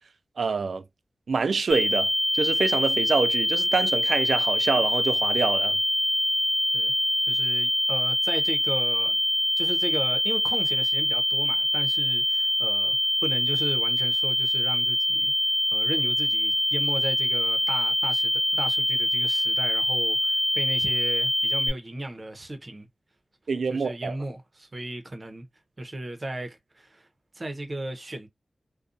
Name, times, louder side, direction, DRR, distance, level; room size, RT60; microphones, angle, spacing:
voice 1, 0.4-0.8 1.3-5.8 23.5-24.1, right 4 dB, 80° right, 0.4 m, -26 dB
sound 1, 1.7-21.7, left 1 dB, 45° left, 0.9 m, -24 dB
voice 2, 7.3-9.2 9.6-13.0 13.2-15.3 15.7-22.9 23.7-25.5 25.8-27.1 27.3-28.3, right 1 dB, 35° right, 0.8 m, -35 dB
2.5 x 2.3 x 2.5 m
wide cardioid pair, 85°, 0 cm